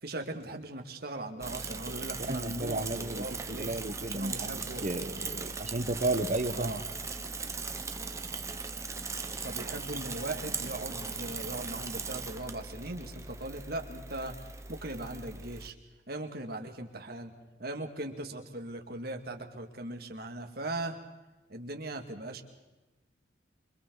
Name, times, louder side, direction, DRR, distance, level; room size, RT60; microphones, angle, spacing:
voice 1, 0.0-3.7 4.1-5.2 6.5-6.9 9.4-15.8 16.1-17.3 17.6-21.0 21.5-22.4, right 2 dB, 55° right, 4 dB, 2.4 m, -39 dB
Bicycle / Mechanisms, 1.4-15.7, right 4 dB, 15° right, 1.0 m, -39 dB
voice 2, 2.3-6.8, right 2 dB, 40° right, 9 dB, 1.3 m, -33 dB
27.5 x 25.5 x 4.1 m, 1.1 s
head